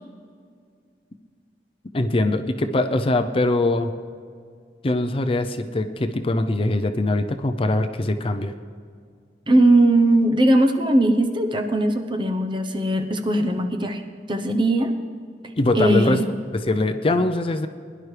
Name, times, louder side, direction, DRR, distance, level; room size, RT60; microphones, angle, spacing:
voice 1, 1.9-3.9 4.8-8.5 15.6-16.2 16.5-17.7, left 2 dB, 30° left, 8 dB, 0.5 m, -22 dB
voice 2, 9.5-14.0 14.3-14.9 15.7-16.2, right 1 dB, 30° right, 5 dB, 0.9 m, -19 dB
21.5 x 11.0 x 3.3 m, 2.2 s
head